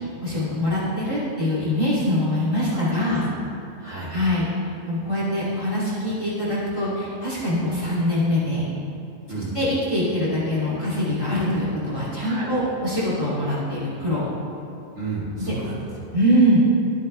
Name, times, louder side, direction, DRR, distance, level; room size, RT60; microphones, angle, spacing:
voice 1, 0.2-3.3 4.1-4.5 4.8-8.7 9.5-14.2 16.1-16.6, equal, 20° left, -8 dB, 2.6 m, -23 dB
voice 2, 2.7-3.2 3.8-4.1 9.3-9.5 12.2-12.5 15.0-16.1, right 3 dB, 55° right, -8 dB, 2.6 m, -33 dB
12.5 x 7.8 x 3.3 m, 2.7 s
omnidirectional pair, 1.5 m